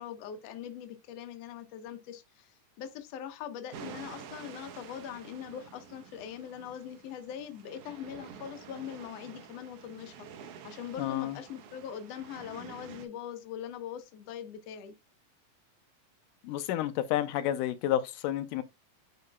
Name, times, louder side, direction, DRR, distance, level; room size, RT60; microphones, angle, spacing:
voice 1, 0.0-2.5 2.8-10.3 10.6-14.9, left 9 dB, 65° left, 1.9 m, -42 dB
sound 1, 3.7-13.1, right 7 dB, 75° right, 2.3 m, -49 dB
voice 2, 11.0-11.4 16.4-18.6, left 12 dB, 85° left, 2.2 m, -30 dB
9.6 x 5.0 x 2.2 m
omnidirectional pair, 3.6 m